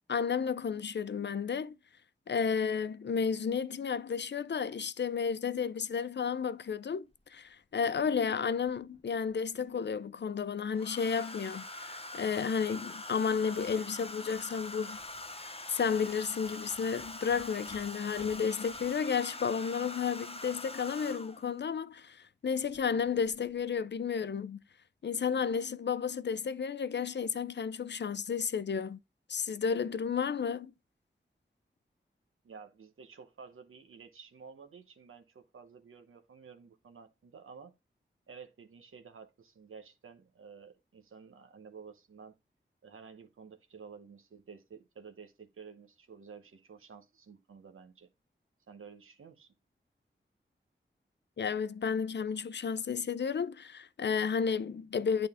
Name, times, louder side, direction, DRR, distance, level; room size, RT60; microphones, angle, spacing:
voice 1, 0.1-1.8 2.3-15.0 15.7-24.6 25.0-29.0 29.3-30.7 51.4-55.3, left 6 dB, 60° left, 0.5 m, -32 dB
Domestic sounds home sounds, 7.1-7.2 8.7-9.3 10.7-21.5 22.7-23.0 23.3-23.6, left 2 dB, 30° left, 0.8 m, -44 dB
voice 2, 32.4-37.7 38.3-42.3 42.8-48.1 48.7-49.5, right 5 dB, 90° right, 0.9 m, -52 dB
8.7 x 3.9 x 3.4 m
cardioid pair, 50°, 21 cm